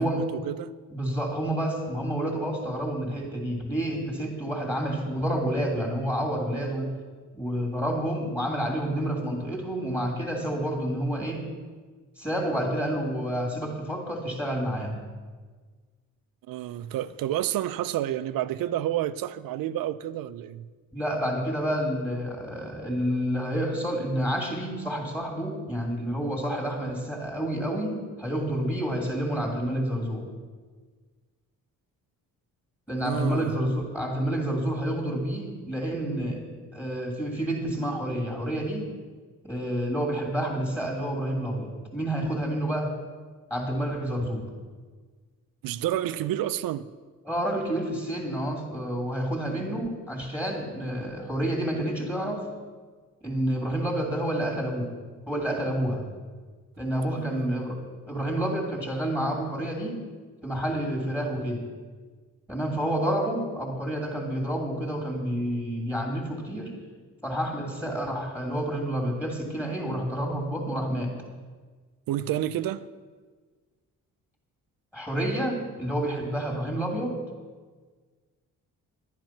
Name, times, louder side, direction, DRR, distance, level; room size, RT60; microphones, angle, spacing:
voice 1, 0.0-0.7 16.5-20.7 33.0-33.6 45.6-46.9 57.2-57.7 72.1-72.9, right 12 dB, 75° right, 0.6 m, -30 dB
voice 2, 0.9-6.9 7.3-11.5 12.2-15.0 20.9-30.3 32.9-38.9 39.4-42.9 43.5-44.5 47.2-52.5 53.2-54.9 55.3-56.1 56.8-60.0 60.4-61.7 62.5-66.7 67.2-71.2 74.9-77.2, right 1 dB, 5° left, 2.8 m, -29 dB
10.5 x 10.0 x 5.9 m
cardioid pair, 80°, 34 cm